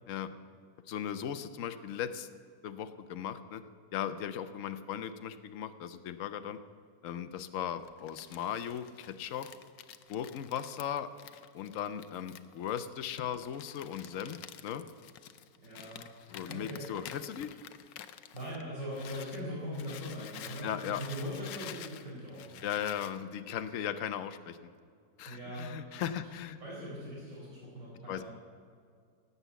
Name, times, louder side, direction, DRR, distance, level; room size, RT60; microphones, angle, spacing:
voice 1, 0.9-2.3 2.6-3.6 3.9-6.6 7.0-9.5 10.1-11.1 11.5-14.8 16.3-17.6 20.6-21.0 22.6-24.7 25.2-26.6 28.1-28.2, left 9 dB, 60° left, 9 dB, 0.9 m, -37 dB
Crumpling crinkling, 7.8-19.4 19.7-23.2, left 11 dB, 85° left, 1.4 m, -50 dB
voice 2, 15.6-16.8 18.3-22.7 25.3-25.7 26.6-28.2, equal, 85° right, -9 dB, 5.7 m, -41 dB
17.0 x 8.3 x 8.2 m, 2.2 s
omnidirectional pair, 1.9 m